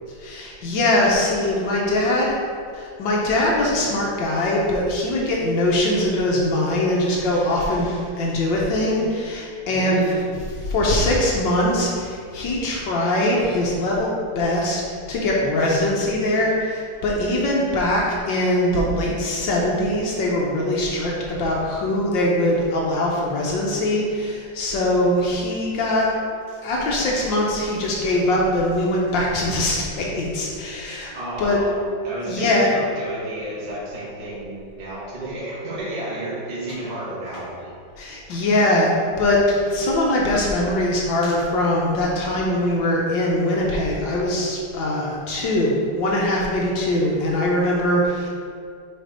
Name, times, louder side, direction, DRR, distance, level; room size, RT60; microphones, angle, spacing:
voice 1, 0.2-2.4 2.7-10.2 10.6-14.8 15.1-26.1 26.6-31.1 31.4-31.6 32.3-32.7 38.0-48.3, left 1 dB, 85° left, -3 dB, 1.7 m, -22 dB
voice 2, 9.7-10.3 31.1-31.7 32.0-37.7 38.0-38.2, right 1 dB, 25° right, -8 dB, 1.3 m, -32 dB
5.8 x 4.7 x 5.0 m, 2.2 s
omnidirectional pair, 2.0 m